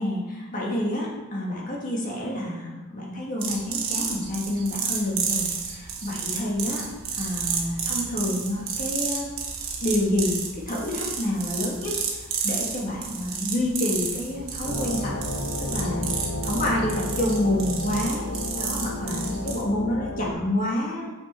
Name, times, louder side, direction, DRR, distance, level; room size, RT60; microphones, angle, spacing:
voice 1, 0.0-6.9 7.2-9.3 9.8-10.4 10.7-12.0 12.2-15.1 15.6-16.1 16.4-21.1, left 1 dB, 35° left, -3 dB, 1.7 m, -28 dB
sound 1, 3.4-19.6, right 6 dB, 60° right, 1.3 m, -31 dB
sound 2, 14.6-20.3, left 1 dB, 55° left, 1.2 m, -31 dB
6.5 x 6.0 x 4.3 m, 1.2 s
head